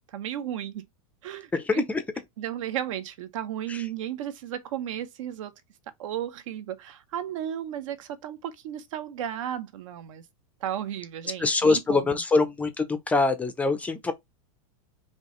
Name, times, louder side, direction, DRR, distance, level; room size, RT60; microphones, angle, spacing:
voice 1, 0.1-0.9 1.2-1.8 2.4-5.5 6.0-10.3 10.6-12.2, right 10 dB, 65° right, 0.9 m, -34 dB
voice 2, 1.5-2.0 3.7-3.8 11.4-14.1, left 3 dB, 10° left, 0.5 m, -24 dB
4.7 x 2.8 x 3.0 m
supercardioid pair, 165°, 18 cm